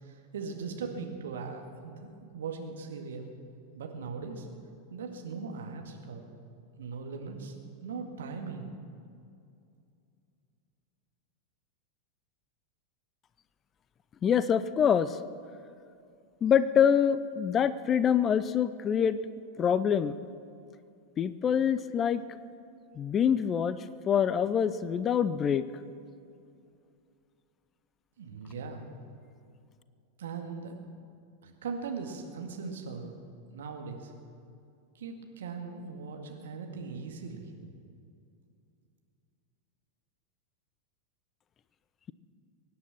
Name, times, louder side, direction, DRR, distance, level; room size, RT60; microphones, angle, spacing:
voice 1, 0.0-3.3 3.7-4.5 4.9-6.3 6.8-7.5 7.8-8.7 28.2-28.9 30.2-30.8 31.4-33.2 33.5-34.1 34.9-37.5, right 5 dB, 60° right, 3 dB, 2.0 m, -39 dB
voice 2, 14.2-15.2 16.4-19.2 19.6-20.1 21.2-22.2 23.0-23.8 24.1-25.7, left 8 dB, 25° left, 15 dB, 0.5 m, -25 dB
23.5 x 9.9 x 6.0 m, 2.5 s
figure-of-eight pair, 90°, 0 cm